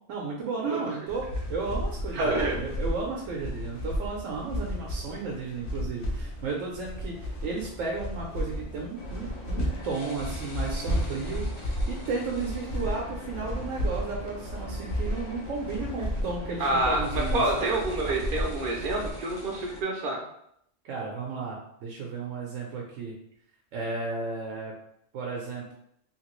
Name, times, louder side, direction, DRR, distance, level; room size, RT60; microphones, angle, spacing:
voice 1, 0.1-17.7 20.8-23.1 23.7-24.7 25.1-25.7, right 4 dB, 85° right, -1 dB, 1.0 m, -34 dB
sound 1, 1.1-19.1, equal, 50° left, 0.8 m, -33 dB
voice 2, 2.1-2.6 16.6-20.2, right 2 dB, 60° right, -1 dB, 0.6 m, -27 dB
sound 2, 8.9-19.8, left 2 dB, 75° left, 1.2 m, -44 dB
2.9 x 2.8 x 3.0 m, 0.73 s
omnidirectional pair, 1.3 m